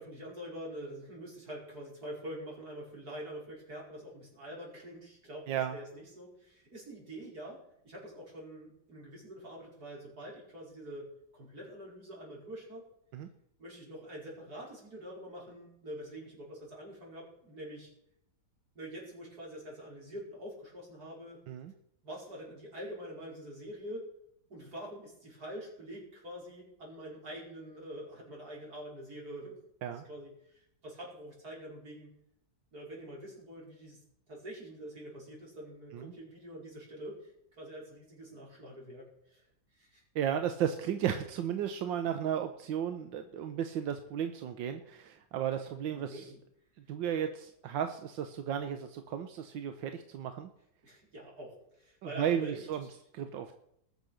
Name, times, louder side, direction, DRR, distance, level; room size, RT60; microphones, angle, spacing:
voice 1, 0.0-12.9 13.6-17.9 18.8-21.4 22.0-24.1 24.5-29.6 29.9-32.1 32.7-34.0 34.3-37.3 37.6-39.4 39.7-40.0 45.9-46.4 50.8-53.0, equal, 55° right, -3 dB, 5.6 m, -45 dB
voice 2, 40.1-46.2 46.9-50.5 52.2-52.9 53.1-53.5, right 9 dB, 90° right, 8 dB, 1.6 m, -34 dB
20.0 x 6.9 x 6.5 m, 0.73 s
omnidirectional pair, 2.0 m